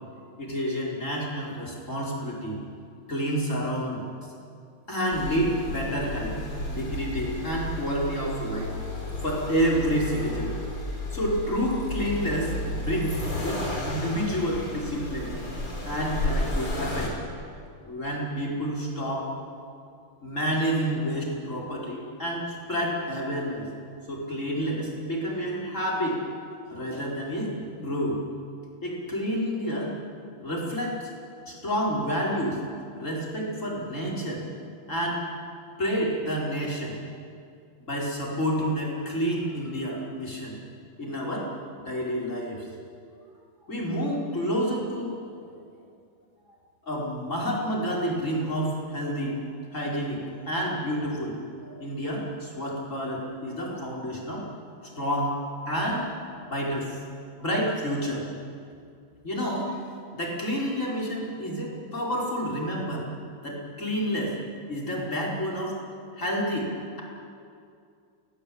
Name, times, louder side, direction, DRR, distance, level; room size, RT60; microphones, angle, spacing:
voice 1, 0.4-2.6 3.1-4.0 4.9-6.3 6.7-8.7 9.2-10.5 11.1-15.3 15.9-17.1 17.9-19.3 20.2-23.7 24.1-26.2 26.7-28.2 28.8-29.9 30.4-31.1 31.5-32.6 33.0-34.4 34.9-35.2 35.8-37.0 37.9-40.6 41.0-41.5 41.8-42.7 43.7-45.1 46.9-49.4 49.7-54.5 54.8-55.4 55.6-56.1 56.4-57.0 57.4-58.2 59.2-59.8 60.1-63.1 63.4-64.4 64.7-65.8 66.2-66.7, equal, 35° left, -3 dB, 6.0 m, -29 dB
Accelerating revving vroom, 5.1-17.1, left 1 dB, 80° left, 5.9 m, -32 dB
29.0 x 19.0 x 9.0 m, 2.4 s
omnidirectional pair, 2.3 m